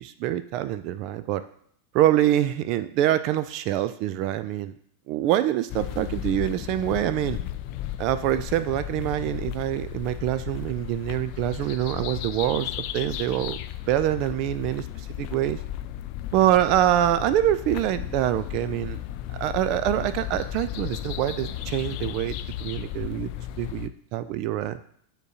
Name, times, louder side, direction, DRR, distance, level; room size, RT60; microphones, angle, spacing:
voice 1, 0.0-1.4 1.9-4.8 5.1-7.4 8.0-13.6 13.9-15.6 16.3-19.0 19.3-22.3 22.6-23.3 23.6-24.8, right 12 dB, 40° right, 12 dB, 0.3 m, -25 dB
sound 1, 5.7-23.9, left 12 dB, 45° left, 0.3 m, -35 dB
9.1 x 3.6 x 2.8 m, 0.65 s
figure-of-eight pair, 90°, 0 cm